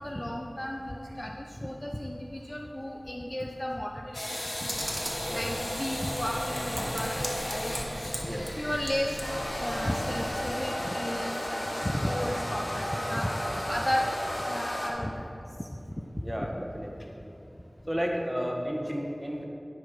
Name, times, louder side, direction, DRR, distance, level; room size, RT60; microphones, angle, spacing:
voice 1, 0.0-4.0 4.6-4.7 5.3-7.7 8.6-9.2 9.6-14.1 14.4-15.3 15.6-15.7 16.4-16.5, left 1 dB, 25° left, 1 dB, 0.6 m, -33 dB
sound 1, 4.1-14.9, equal, 80° left, 1.6 m, -34 dB
Computer keyboard, 4.7-10.3, right 1 dB, 25° right, 1.4 m, -38 dB
voice 2, 16.2-17.1 17.9-19.4, equal, 5° right, 0 dB, 1.3 m, -32 dB
10.0 x 4.9 x 5.9 m, 2.7 s
wide cardioid pair, 45°, 0 cm